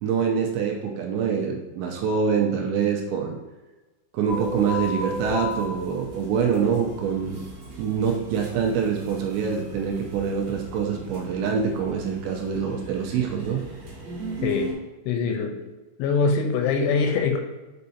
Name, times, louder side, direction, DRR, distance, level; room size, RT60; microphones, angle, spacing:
voice 1, 0.0-3.4 4.1-7.4 7.8-13.6, right 6 dB, 80° right, 1 dB, 2.7 m, -25 dB
sound 1, 4.3-14.7, equal, 60° right, 1.9 m, -36 dB
voice 2, 15.1-15.7 16.0-17.4, left 4 dB, 85° left, 4 dB, 3.0 m, -23 dB
6.5 x 5.3 x 2.7 m, 1.1 s
omnidirectional pair, 5.5 m